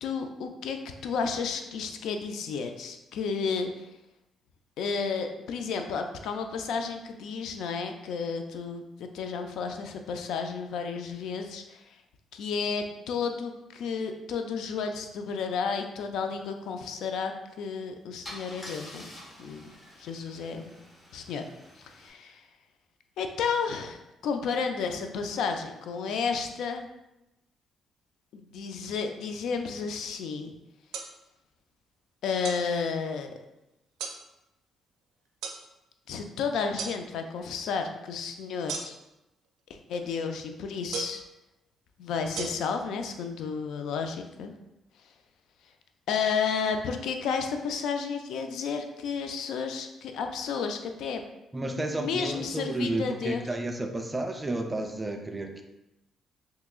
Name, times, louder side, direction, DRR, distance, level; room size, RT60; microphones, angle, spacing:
voice 1, 0.0-3.9 4.8-12.0 12.3-19.1 19.4-19.7 20.0-20.7 21.1-21.4 22.0-22.4 23.2-26.9 28.3-30.5 32.2-33.3 36.1-38.9 39.7-41.2 42.0-44.5 46.1-51.2 51.6-53.4, left 5 dB, 80° left, 6 dB, 0.3 m, -32 dB
Car / Engine starting / Idling, 17.5-17.7 18.2-22.1, left 1 dB, 40° left, 1.1 m, -47 dB
sound 1, 30.9-31.1 32.4-32.6 34.0-34.2 35.4-35.6 36.8-37.0 38.7-39.1 40.9-41.2 42.4-42.5, right 6 dB, 85° right, 0.4 m, -35 dB
voice 2, 51.5-55.6, right 2 dB, 20° right, 4 dB, 0.3 m, -32 dB
3.5 x 2.8 x 2.3 m, 0.92 s
cardioid pair, 90°, 0 cm